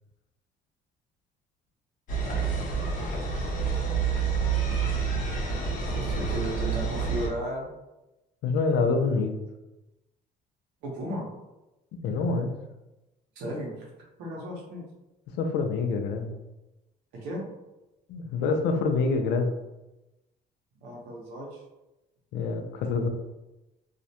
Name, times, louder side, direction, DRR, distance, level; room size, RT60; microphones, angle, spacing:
sound 1, 2.1-7.3, right 5 dB, 50° left, 0.7 m, -28 dB
voice 1, 5.9-7.7 10.8-11.3 13.4-13.9 14.2-14.8 17.1-17.4 20.8-21.6, equal, 90° right, -2 dB, 0.8 m, -34 dB
voice 2, 8.4-9.3 11.9-12.5 15.4-16.3 18.1-19.6 22.3-23.1, left 4 dB, 85° left, 5 dB, 0.4 m, -26 dB
2.3 x 2.1 x 2.7 m, 1.0 s
cardioid pair, 110°, 17 cm